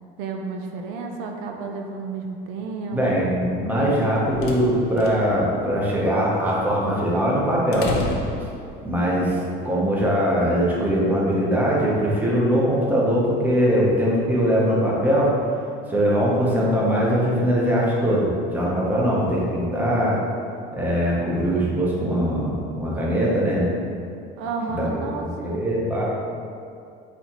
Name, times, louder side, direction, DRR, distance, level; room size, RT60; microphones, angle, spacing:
voice 1, 0.2-3.0 3.8-3.9 24.4-25.6, right 4 dB, 80° right, 3 dB, 0.5 m, -31 dB
voice 2, 2.9-7.9 8.8-15.3 15.9-20.2 20.7-23.7 24.7-24.9 25.4-26.0, equal, 10° right, -5 dB, 0.7 m, -21 dB
sound 1, 3.8-9.1, left 1 dB, 55° left, 0.6 m, -33 dB
4.1 x 4.0 x 2.9 m, 2.4 s
cardioid pair, 155°, 20 cm